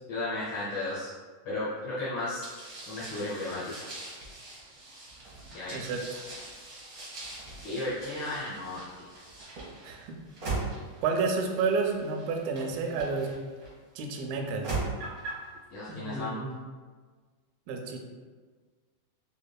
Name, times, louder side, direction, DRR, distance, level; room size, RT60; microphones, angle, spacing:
voice 1, 0.1-1.1 1.4-2.4 2.9-3.9 5.5-5.8 7.6-9.1 15.7-16.5, left 2 dB, 70° left, -9 dB, 1.7 m, -34 dB
sound 1, 2.4-13.7 14.4-15.5, right 3 dB, 65° right, 1.0 m, -40 dB
voice 2, 5.7-6.2 9.8-10.2 11.0-13.3 14.0-14.7 15.9-16.6 17.7-18.0, right 4 dB, 85° right, 3 dB, 2.3 m, -30 dB
5.2 x 3.5 x 2.2 m, 1.5 s
omnidirectional pair, 4.0 m